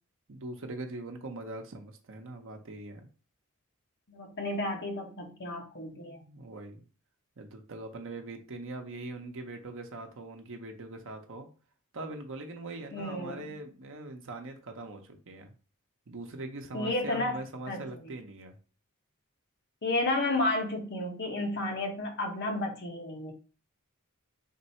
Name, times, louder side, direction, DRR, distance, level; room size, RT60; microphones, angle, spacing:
voice 1, 0.3-3.1 5.9-6.8 7.4-11.5 11.9-15.5 16.1-18.6, right 2 dB, 60° right, 4 dB, 0.8 m, -42 dB
voice 2, 4.1-6.2 12.9-13.4 16.7-17.4 17.7-17.8 19.8-23.3, left 2 dB, 50° left, 2 dB, 1.0 m, -32 dB
3.7 x 2.7 x 4.2 m, 0.37 s
head